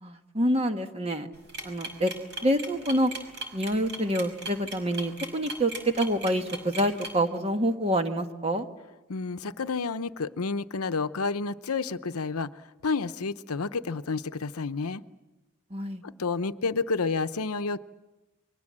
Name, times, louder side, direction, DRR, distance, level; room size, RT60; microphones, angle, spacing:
voice 1, 0.0-1.3 1.6-2.1 2.4-3.1 3.5-8.7 15.7-16.0, right 1 dB, 25° right, 6 dB, 1.4 m, -27 dB
sound 1, 1.3-7.1, right 2 dB, 50° right, 5.7 m, -37 dB
voice 2, 9.1-15.0 16.0-17.8, left 4 dB, 85° left, 12 dB, 0.8 m, -30 dB
28.5 x 23.0 x 7.5 m, 1.1 s
head